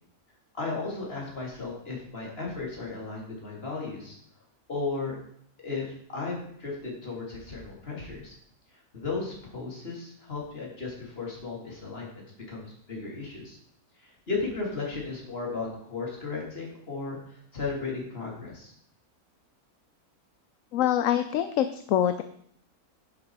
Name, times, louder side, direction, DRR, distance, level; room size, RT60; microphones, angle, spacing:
voice 1, 0.5-4.2 4.7-5.2 5.6-8.4 8.9-13.6 14.0-18.7, left 3 dB, 40° left, -2 dB, 3.4 m, -35 dB
voice 2, 20.7-22.2, left 11 dB, 70° left, 10 dB, 0.9 m, -25 dB
10.0 x 8.3 x 4.8 m, 0.67 s
omnidirectional pair, 1.6 m